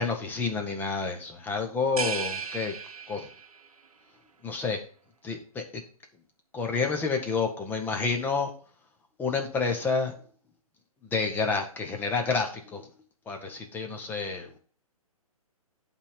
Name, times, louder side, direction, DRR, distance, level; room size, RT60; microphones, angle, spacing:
voice 1, 0.0-2.8 3.1-3.3 4.4-4.8 5.2-5.8 6.5-8.5 9.2-10.2 11.1-12.9 13.3-14.6, left 4 dB, 10° left, 3 dB, 1.2 m, -29 dB
sound 1, 2.0-3.7, right 5 dB, 75° right, 1.1 m, -34 dB
11.0 x 3.7 x 5.1 m, 0.43 s
figure-of-eight pair, 135°, 19 cm